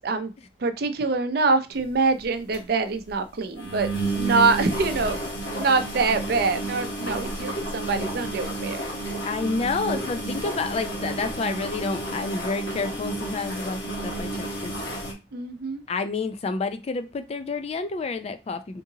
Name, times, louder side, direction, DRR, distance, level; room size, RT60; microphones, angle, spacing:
voice 1, 0.6-3.9 4.2-5.2 5.6-8.8 9.9-10.0 15.3-15.8, right 4 dB, 60° right, 8 dB, 0.5 m, -24 dB
sound 1, 1.8-1.9 2.2-2.3 2.5-2.6 2.9-3.1 3.6-15.1, right 2 dB, 75° left, 1.2 m, -31 dB
voice 2, 9.3-14.8 15.9-18.8, left 4 dB, 35° left, 9 dB, 0.3 m, -29 dB
3.7 x 2.7 x 2.7 m, 0.27 s
head